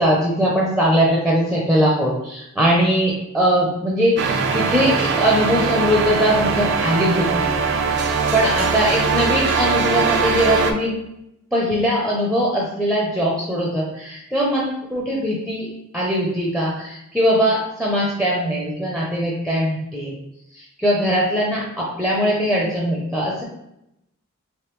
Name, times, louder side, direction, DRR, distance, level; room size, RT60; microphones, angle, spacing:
voice 1, 0.0-7.5 7.9-10.9 11.5-15.7 15.9-20.1 20.6-23.4, equal, ahead, -4 dB, 0.6 m, -21 dB
sound 1, 4.2-10.7, right 5 dB, 55° right, 0.4 m, -21 dB
3.4 x 3.0 x 3.0 m, 0.83 s
head